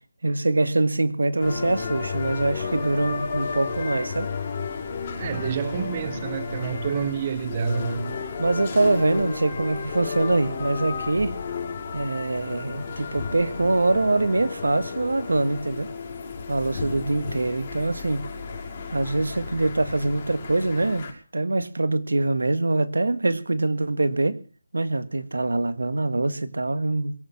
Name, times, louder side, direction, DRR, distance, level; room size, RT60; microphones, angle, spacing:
voice 1, 0.2-4.3 8.4-11.3 11.9-15.9 16.5-18.3 18.9-24.4 24.7-27.1, right 2 dB, 80° right, 1.8 m, -24 dB
sound 1, 1.4-21.1, left 5 dB, 25° left, 5.5 m, -33 dB
voice 2, 5.2-8.2, right 6 dB, 25° right, 1.1 m, -28 dB
22.5 x 8.7 x 7.4 m
figure-of-eight pair, 165°, 0 cm